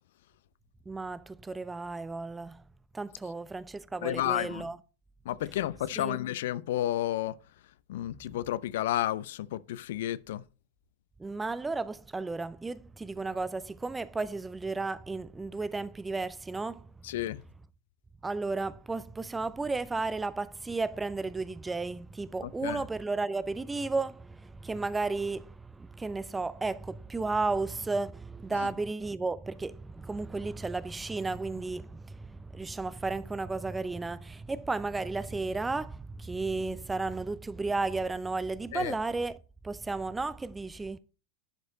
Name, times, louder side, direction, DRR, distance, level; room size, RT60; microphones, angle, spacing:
voice 1, 0.9-2.6 2.9-4.8 6.0-6.2 11.2-16.9 18.2-39.4 39.6-41.0, right 3 dB, 10° right, 0.4 m, -33 dB
voice 2, 4.0-4.6 5.3-7.4 7.9-10.4 17.0-17.4 22.4-22.8 28.5-28.7 38.7-38.9, left 13 dB, 55° left, 0.3 m, -31 dB
11.0 x 4.8 x 4.0 m
figure-of-eight pair, 90°, 0 cm